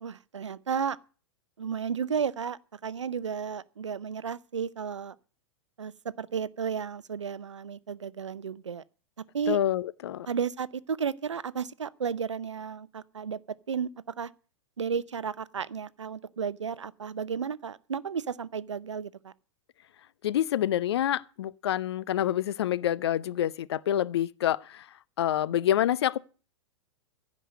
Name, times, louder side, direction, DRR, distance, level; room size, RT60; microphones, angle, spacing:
voice 1, 0.0-1.0 1.6-5.1 5.8-5.9 6.2-8.8 9.3-9.6 10.3-13.4 13.7-13.9 14.2-14.3 14.8-19.3, right 7 dB, 80° right, 0.6 m, -33 dB
voice 2, 9.5-10.3 20.2-24.9 25.2-26.2, left 11 dB, 60° left, 0.6 m, -27 dB
15.5 x 5.2 x 9.2 m
figure-of-eight pair, 100°, 15 cm